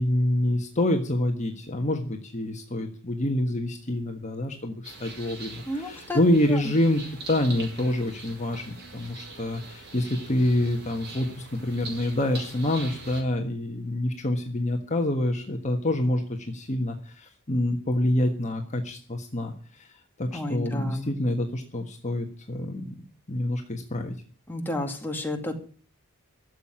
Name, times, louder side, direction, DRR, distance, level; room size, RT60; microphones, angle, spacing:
voice 1, 0.0-7.0 7.3-23.0 23.3-24.1, left 1 dB, 35° left, 3 dB, 1.5 m, -27 dB
sound 1, 4.8-13.2, right 3 dB, 50° right, 5.2 m, -43 dB
voice 2, 5.7-6.2 6.5-6.7 20.3-21.1 24.5-25.6, left 1 dB, 10° left, 2 dB, 2.3 m, -31 dB
13.5 x 7.6 x 9.9 m, 0.42 s
head